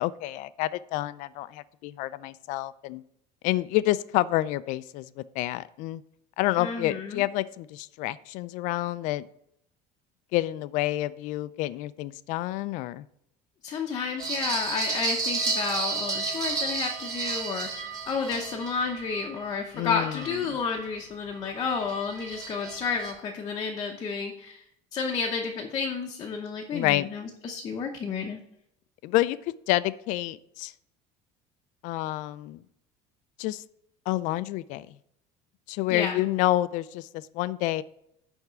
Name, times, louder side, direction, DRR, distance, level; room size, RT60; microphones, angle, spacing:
voice 1, 0.0-3.0 3.4-6.0 6.4-9.3 10.3-13.0 19.7-20.4 26.7-27.1 29.0-30.7 31.8-32.6 33.4-33.6 34.1-34.9 35.7-37.8, left 16 dB, 60° left, 16 dB, 0.4 m, -28 dB
voice 2, 6.6-7.2 13.6-24.6 24.9-28.4 35.9-36.2, left 5 dB, 25° left, 0 dB, 0.8 m, -31 dB
sound 1, 14.2-20.9 21.3-23.1, right 3 dB, 25° right, 3.3 m, -32 dB
10.5 x 3.6 x 6.7 m, 0.76 s
cardioid pair, 170°, 15 cm